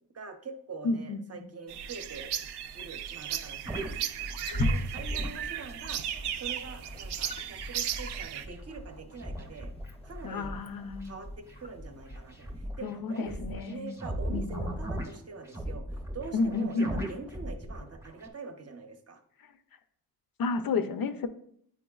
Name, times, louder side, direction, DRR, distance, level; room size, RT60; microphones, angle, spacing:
voice 1, 0.1-2.3 2.7-3.9 4.5-6.0 6.3-9.7 10.0-10.6 11.0-13.4 13.7-19.2, right 4 dB, 40° right, 6 dB, 0.7 m, -44 dB
voice 2, 0.8-1.2 10.2-11.1 12.8-14.0 14.3-14.6 16.3-17.1 20.4-21.3, left 4 dB, 60° left, 9 dB, 0.6 m, -31 dB
sound 1, 1.7-8.5, right 10 dB, 85° right, 0.5 m, -36 dB
sound 2, 3.6-5.7 6.2-11.1 11.5-18.3, right 1 dB, 5° right, 0.7 m, -39 dB
Wild animals, 4.1-12.7, left 1 dB, 15° left, 0.4 m, -38 dB
8.9 x 4.6 x 2.3 m, 0.65 s
wide cardioid pair, 130°, 39 cm